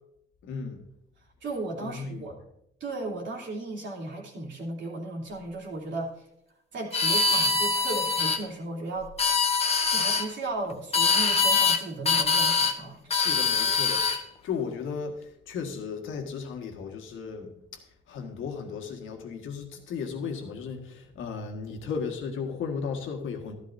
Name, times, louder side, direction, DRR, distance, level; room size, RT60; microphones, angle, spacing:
voice 1, 0.4-0.8 1.8-2.2 13.1-14.0 14.4-15.2 15.5-17.5 18.1-23.5, left 6 dB, 80° left, 3 dB, 1.7 m, -35 dB
voice 2, 1.4-2.4 2.8-6.1 6.7-9.1 9.9-13.1, right 2 dB, 70° right, -2 dB, 3.0 m, -35 dB
sound 1, 6.9-8.4 9.0-10.3 10.9-11.8 12.1-12.8 13.1-14.2, left 4 dB, 30° left, 1.1 m, -23 dB
12.5 x 12.0 x 2.7 m, 0.79 s
cardioid pair, 90°, 20 cm